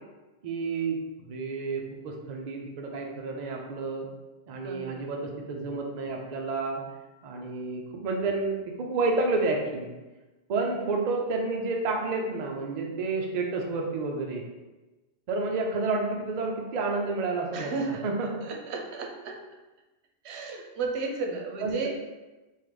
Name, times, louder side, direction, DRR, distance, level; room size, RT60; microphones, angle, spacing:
voice 1, 0.4-1.0 1.3-4.1 4.5-6.8 7.2-9.9 10.5-14.4 15.3-18.4 21.6-21.9, right 3 dB, 55° right, 1 dB, 0.5 m, -30 dB
voice 2, 4.6-5.0 17.5-19.3 20.2-21.9, right 4 dB, 90° right, 1 dB, 0.9 m, -34 dB
3.6 x 2.4 x 3.2 m, 1.1 s
omnidirectional pair, 1.1 m